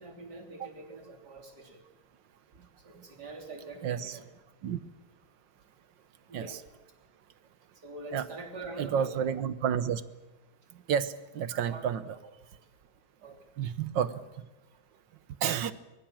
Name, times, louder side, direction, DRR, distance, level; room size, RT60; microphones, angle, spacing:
voice 1, 0.0-1.8 2.8-4.2 6.3-6.6 7.8-9.1 11.5-12.2 13.2-13.4, right 2 dB, 55° right, 4 dB, 3.7 m, -44 dB
voice 2, 3.8-4.2 4.6-4.8 6.3-6.6 8.1-8.3 8.8-10.0 10.9-12.2 13.6-14.4 15.4-15.7, right 8 dB, 70° right, 14 dB, 1.7 m, -30 dB
24.0 x 21.0 x 7.5 m, 1.1 s
omnidirectional pair, 2.1 m